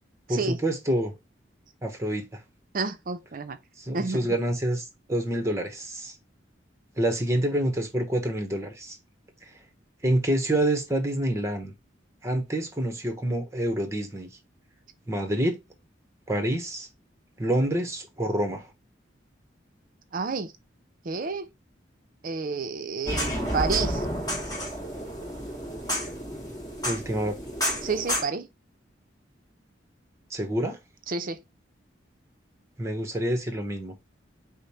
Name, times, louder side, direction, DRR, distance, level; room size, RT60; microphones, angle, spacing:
voice 1, 0.3-1.1 1.8-2.2 3.8-6.1 7.0-9.0 10.0-11.7 12.2-14.3 15.1-15.6 16.3-16.9 17.4-18.7 26.8-27.4 30.3-30.8 32.8-33.9, right 1 dB, 15° right, 0.9 m, -27 dB
voice 2, 2.7-3.6 3.9-4.4 20.1-20.5 21.0-21.5 22.2-24.1 27.8-28.5 31.1-31.4, right 4 dB, 50° right, 0.5 m, -30 dB
sound 1, 23.1-28.2, equal, 20° left, 1.6 m, -30 dB
5.1 x 2.1 x 4.2 m
head